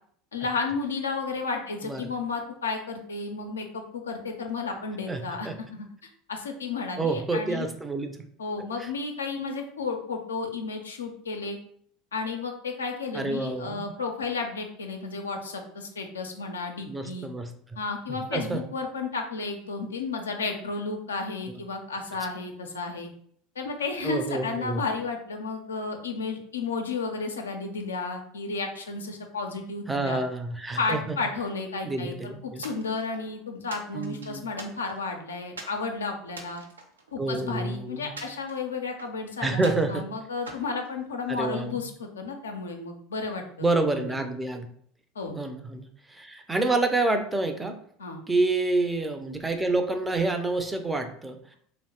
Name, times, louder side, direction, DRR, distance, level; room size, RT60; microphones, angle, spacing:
voice 1, 0.3-5.9 6.3-7.7 8.4-11.6 12.1-17.3 17.8-23.1 23.6-30.2 30.8-36.6 37.1-39.6 39.9-43.7 44.0-44.1 45.2-45.4 48.0-48.2, left 4 dB, 90° left, 3 dB, 0.4 m, -32 dB
voice 2, 5.1-5.6 7.0-8.2 8.8-8.9 13.1-13.9 16.8-17.5 18.1-18.6 24.0-24.8 29.9-31.2 31.8-32.6 33.9-34.5 37.2-38.2 39.4-40.0 41.3-41.8 43.6-44.7 45.3-47.8 48.3-51.4, right 2 dB, 15° right, 6 dB, 0.4 m, -28 dB
sound 1, 32.6-33.3 33.7-35.1 35.6-35.8 36.3-37.6 38.2-39.2 39.6-40.0 40.5-41.5, right 2 dB, 90° right, 0.4 m, -43 dB
2.9 x 2.0 x 2.8 m, 0.62 s
hypercardioid pair, 80°, 0 cm